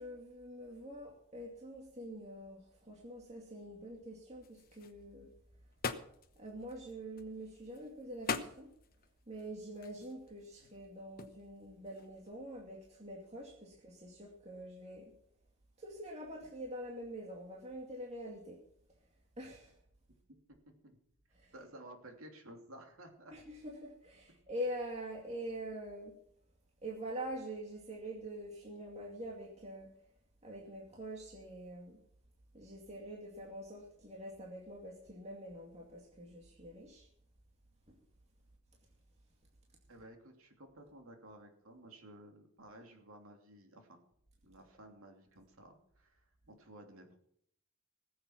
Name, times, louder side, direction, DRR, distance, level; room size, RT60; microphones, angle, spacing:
voice 1, 0.0-5.3 6.4-8.7 9.3-15.1 15.8-18.6 19.4-19.7 21.4-21.5 23.3-26.1 26.8-29.9 30.4-32.0 32.5-37.1 37.9-38.0, right 1 dB, 30° right, -1 dB, 2.3 m, -45 dB
sound 1, 4.4-12.3, left 5 dB, 40° left, 1.0 m, -44 dB
voice 2, 20.7-21.0 21.5-23.3 39.9-44.0 44.4-47.2, right 1 dB, 70° right, 3 dB, 2.9 m, -55 dB
19.0 x 7.9 x 5.9 m, 0.69 s
head